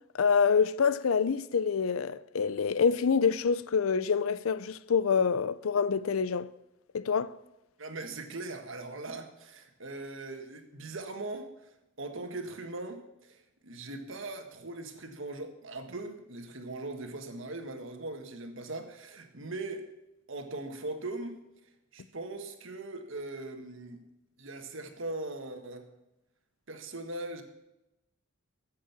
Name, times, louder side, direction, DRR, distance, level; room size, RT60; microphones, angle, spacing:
voice 1, 0.2-6.5 6.9-7.3, left 6 dB, 85° left, 0.5 m, -26 dB
voice 2, 7.8-11.5 12.0-19.8 20.3-21.4 21.9-24.0 24.4-25.9 26.7-27.4, right 2 dB, 65° right, 1.6 m, -40 dB
15.0 x 7.6 x 5.9 m
head